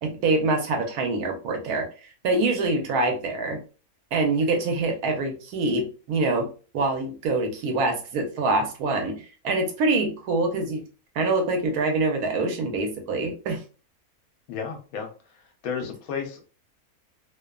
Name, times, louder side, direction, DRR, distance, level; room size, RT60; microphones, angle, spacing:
voice 1, 0.0-3.6 4.1-10.8 11.1-13.6, right 2 dB, 80° right, 3 dB, 1.2 m, -25 dB
voice 2, 14.5-15.1 15.6-16.5, left 6 dB, 75° left, 4 dB, 1.0 m, -32 dB
2.7 x 2.2 x 2.2 m, 0.36 s
omnidirectional pair, 1.6 m